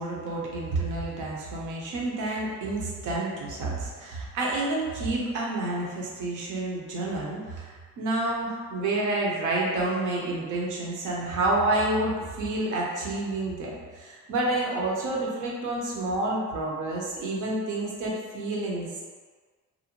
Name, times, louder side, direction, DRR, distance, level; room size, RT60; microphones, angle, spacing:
voice 1, 0.0-19.0, right 2 dB, 80° right, -3 dB, 0.7 m, -29 dB
2.6 x 2.0 x 2.9 m, 1.5 s
cardioid pair, 90°, 30 cm